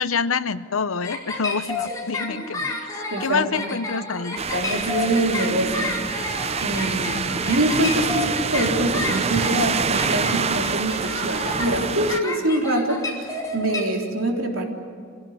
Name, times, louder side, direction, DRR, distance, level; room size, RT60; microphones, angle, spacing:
voice 1, 0.0-2.8 3.2-4.4, left 5 dB, 90° left, 14 dB, 0.8 m, -26 dB
sound 1, 1.0-13.8, left 3 dB, 15° left, 4.5 m, -30 dB
voice 2, 3.1-3.6 4.5-14.7, right 1 dB, 80° right, 1 dB, 3.8 m, -25 dB
sound 2, 4.4-12.2, right 5 dB, 30° right, 0.5 m, -26 dB
26.5 x 17.0 x 9.6 m, 2.1 s
head